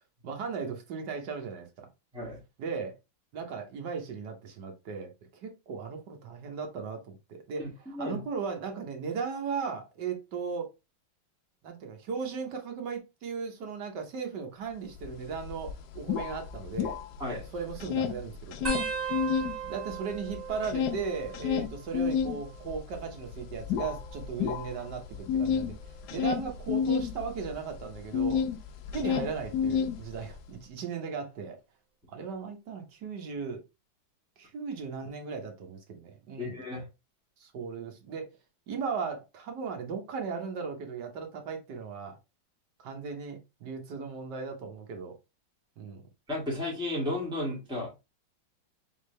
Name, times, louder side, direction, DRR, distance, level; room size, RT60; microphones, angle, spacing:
voice 1, 0.2-1.9 2.6-3.0 3.3-5.1 5.4-10.7 11.6-17.0 17.5-18.9 19.6-28.4 28.9-31.6 32.1-33.6 34.4-36.6 37.4-38.3 38.7-42.2 42.8-45.1 45.8-46.0, right 5 dB, 65° right, 1.5 m, -37 dB
sound 1, 15.0-15.1 15.4-17.4 17.7-19.5 19.9-28.6 28.8-30.4, left 7 dB, 75° left, 1.0 m, -30 dB
sound 2, 18.6-21.8 22.1-22.7 23.7-25.2 25.8-26.1 27.3-27.7 29.2-29.3, right 6 dB, 25° right, 1.2 m, -39 dB
voice 2, 36.4-36.8 46.3-47.9, left 1 dB, ahead, 1.7 m, -33 dB
3.7 x 3.7 x 3.2 m
omnidirectional pair, 2.2 m